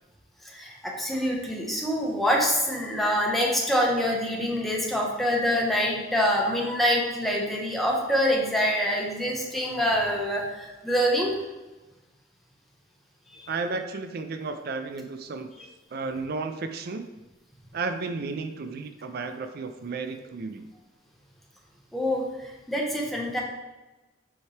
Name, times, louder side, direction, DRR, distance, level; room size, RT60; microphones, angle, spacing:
voice 1, 0.4-11.3 13.3-13.5 21.9-23.4, equal, ahead, -3 dB, 1.1 m, -25 dB
voice 2, 13.5-15.5 15.9-17.1 17.7-20.6, right 4 dB, 55° right, 8 dB, 0.4 m, -33 dB
7.2 x 4.6 x 3.2 m, 1.1 s
head